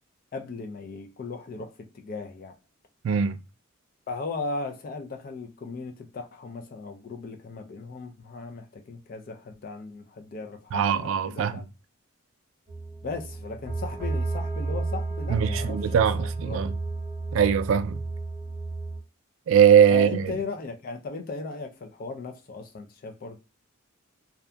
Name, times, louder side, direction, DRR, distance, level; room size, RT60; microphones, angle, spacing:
voice 1, 0.3-2.6 4.1-11.6 13.0-16.6 19.9-23.4, left 4 dB, 45° left, 0.3 m, -37 dB
voice 2, 3.0-3.4 10.7-11.6 15.3-16.7 17.3-18.0 19.5-20.3, right 8 dB, 70° right, 0.3 m, -21 dB
sound 1, 12.7-19.0, right 3 dB, 10° left, 1.3 m, -32 dB
2.7 x 2.3 x 2.2 m
head